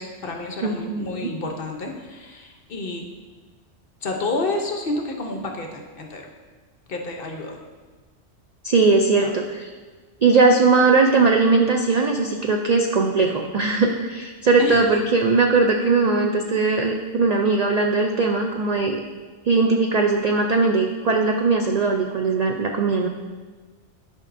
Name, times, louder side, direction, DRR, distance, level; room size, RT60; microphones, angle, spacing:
voice 1, 0.0-3.0 4.0-6.3 6.9-7.6 9.2-9.4 10.4-10.6 13.0-13.3 14.6-14.8, left 2 dB, 50° left, 2 dB, 0.9 m, -30 dB
voice 2, 0.6-1.3 8.6-9.7 10.2-19.0 19.4-23.1, right 3 dB, 70° right, 2 dB, 0.3 m, -19 dB
11.0 x 5.2 x 2.6 m, 1.4 s
omnidirectional pair, 1.3 m